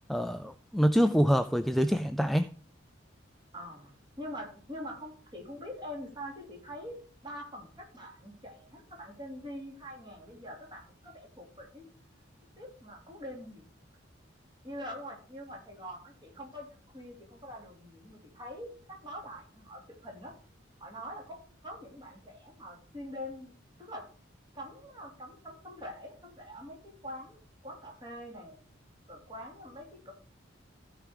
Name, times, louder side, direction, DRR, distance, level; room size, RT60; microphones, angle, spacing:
voice 1, 0.1-2.5, equal, ahead, 9 dB, 0.3 m, -26 dB
voice 2, 3.5-11.9 12.6-13.6 14.6-20.3 20.8-23.5 23.8-24.1 24.5-28.6 29.1-30.1, equal, 25° right, 0 dB, 3.3 m, -44 dB
15.0 x 5.0 x 4.9 m, 0.43 s
head